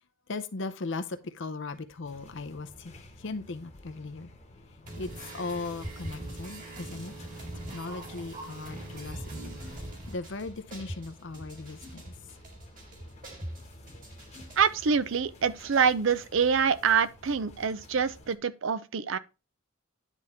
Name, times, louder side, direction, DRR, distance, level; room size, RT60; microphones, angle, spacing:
voice 1, 0.3-4.3 4.7-7.1 7.5-12.1, left 3 dB, 60° left, 0.6 m, -38 dB
sound 1, 2.0-18.4, left 1 dB, 30° left, 1.1 m, -52 dB
sound 2, 4.9-14.9, right 1 dB, 40° right, 2.2 m, -42 dB
voice 2, 14.6-19.2, right 6 dB, 60° right, 0.5 m, -26 dB
9.9 x 3.6 x 4.1 m
head